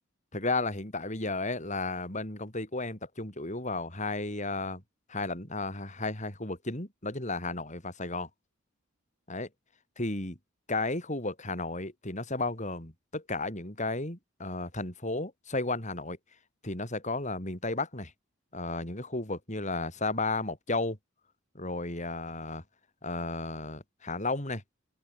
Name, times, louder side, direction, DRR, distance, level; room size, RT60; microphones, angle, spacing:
voice 1, 0.3-4.8 5.1-8.3 9.3-9.5 10.0-10.4 10.7-16.2 16.6-18.1 18.5-21.0 21.5-22.6 23.0-24.6, left 2 dB, 35° left, 6.6 m, -33 dB
open air
head